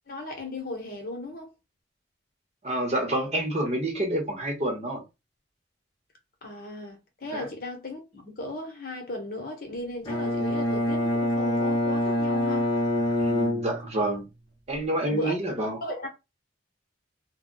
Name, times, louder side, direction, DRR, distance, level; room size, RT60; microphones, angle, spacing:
voice 1, 0.1-1.5 6.4-12.7 15.1-15.3 15.8-16.1, left 2 dB, 50° left, 1.0 m, -36 dB
voice 2, 2.6-5.0 7.3-7.4 13.2-14.3 14.7-15.8, right 1 dB, 35° right, 0.9 m, -28 dB
Bowed string instrument, 10.1-14.3, left 1 dB, 25° left, 0.8 m, -26 dB
2.2 x 2.2 x 3.8 m
head